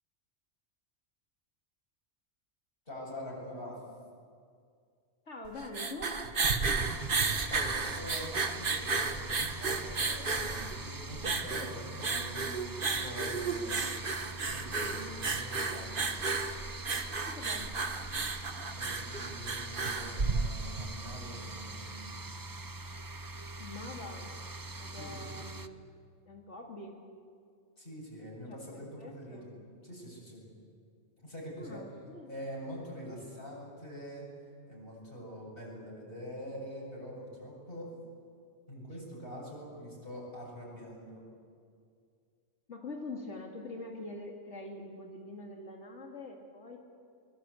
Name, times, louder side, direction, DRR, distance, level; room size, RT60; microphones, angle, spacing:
voice 1, 2.9-3.8 7.1-14.0 14.5-16.0 18.7-22.1 24.9-25.3 27.8-29.5 29.8-30.4 31.2-31.8 32.3-34.3 34.7-37.9 38.7-41.2, equal, 50° left, -4 dB, 8.0 m, -44 dB
voice 2, 5.3-6.1 17.2-17.7 23.6-24.3 24.8-25.9 26.3-27.0 28.5-29.5 31.6-32.3 42.7-46.8, left 2 dB, 80° left, 1 dB, 2.8 m, -44 dB
sound 1, 5.5-20.9, right 4 dB, 50° right, 1.5 m, -33 dB
sound 2, 6.8-25.7, right 2 dB, 20° right, 0.6 m, -43 dB
24.5 x 21.5 x 8.5 m, 2.2 s
omnidirectional pair, 1.2 m